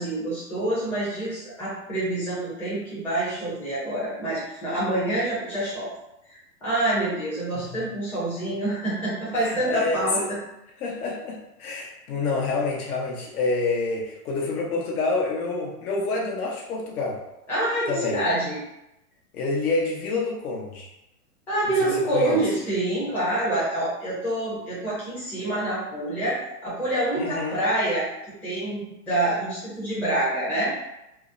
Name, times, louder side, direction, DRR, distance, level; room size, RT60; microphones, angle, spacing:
voice 1, 0.0-5.9 6.3-10.4 17.5-18.6 21.5-28.1 28.4-30.7, right 1 dB, 5° left, -11 dB, 0.5 m, -26 dB
voice 2, 9.4-10.0 10.8-17.2 17.9-18.2 19.3-20.9 21.8-22.4 27.2-27.6, left 3 dB, 75° left, -2 dB, 0.9 m, -28 dB
2.7 x 2.0 x 2.5 m, 0.89 s
hypercardioid pair, 140°, 46 cm